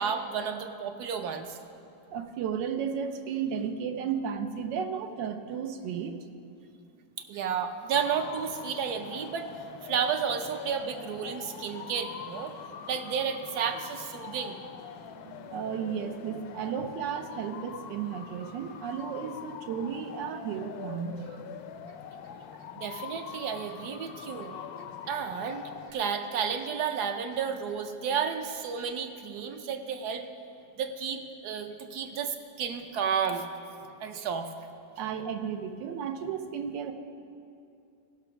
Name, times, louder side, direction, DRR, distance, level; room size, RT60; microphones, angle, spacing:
voice 1, 0.0-1.6 7.3-9.5 9.8-12.5 12.9-14.6 22.8-24.5 25.1-30.3 30.8-33.4 34.0-34.5, right 7 dB, 70° right, 6 dB, 1.2 m, -32 dB
voice 2, 2.1-6.2 15.0-21.4 35.0-36.9, right 7 dB, 85° right, 7 dB, 1.4 m, -34 dB
sound 1, 7.9-25.9, left 8 dB, 70° left, 1.0 m, -44 dB
15.5 x 6.1 x 5.8 m, 2.6 s
omnidirectional pair, 1.9 m